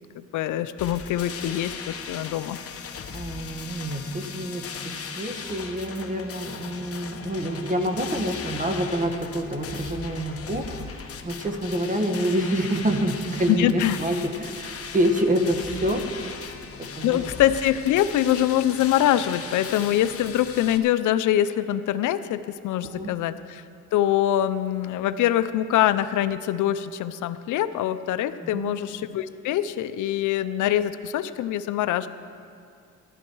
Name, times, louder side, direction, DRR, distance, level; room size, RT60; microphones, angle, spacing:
voice 1, 0.1-2.6 13.5-14.0 17.0-23.6 23.9-32.1, left 12 dB, 80° left, 13 dB, 0.6 m, -24 dB
sound 1, 0.8-20.8, left 6 dB, 50° left, 1.1 m, -38 dB
voice 2, 3.1-17.2 22.8-23.1 28.4-28.7, right 1 dB, 25° right, 4 dB, 1.5 m, -27 dB
14.5 x 11.5 x 4.7 m, 2.4 s
cardioid pair, 90°, 30 cm